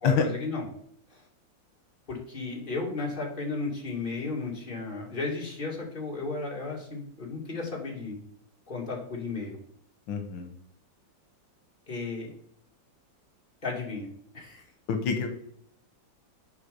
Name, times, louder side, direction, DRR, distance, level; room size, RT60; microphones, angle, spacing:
voice 1, 0.0-0.6 1.1-1.2 2.1-8.2 8.7-9.6 11.9-12.3 13.6-14.1 14.3-14.6, left 3 dB, 25° left, -2 dB, 2.5 m, -34 dB
voice 2, 10.1-10.5 14.9-15.3, left 6 dB, 80° left, 6 dB, 1.7 m, -26 dB
8.1 x 5.2 x 5.2 m, 0.66 s
omnidirectional pair, 2.1 m